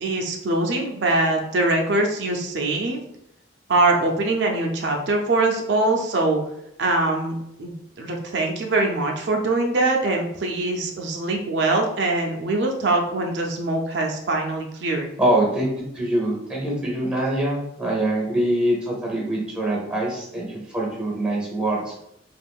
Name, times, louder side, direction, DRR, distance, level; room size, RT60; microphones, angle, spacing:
voice 1, 0.0-3.0 3.7-6.4 6.8-15.1, right 2 dB, 70° right, 2 dB, 0.4 m, -23 dB
voice 2, 15.2-21.9, right 1 dB, 5° right, -3 dB, 0.7 m, -24 dB
3.5 x 2.5 x 2.3 m, 0.77 s
head